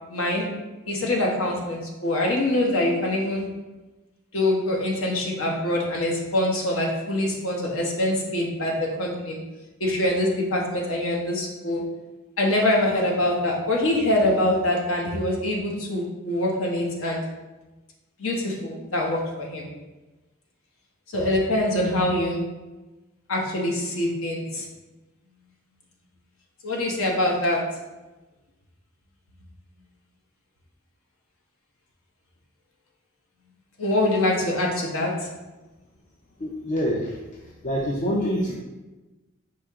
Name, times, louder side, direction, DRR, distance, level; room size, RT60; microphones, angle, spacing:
voice 1, 0.1-0.5 0.9-3.5 4.3-9.4 9.8-11.8 12.4-17.2 18.2-19.7 21.1-22.4 23.3-24.7 26.6-27.6 33.8-35.3, left 1 dB, 70° left, -1 dB, 0.9 m, -24 dB
voice 2, 36.4-37.2 37.6-38.5, equal, 35° left, -3 dB, 0.5 m, -25 dB
5.0 x 2.8 x 3.5 m, 1.1 s
head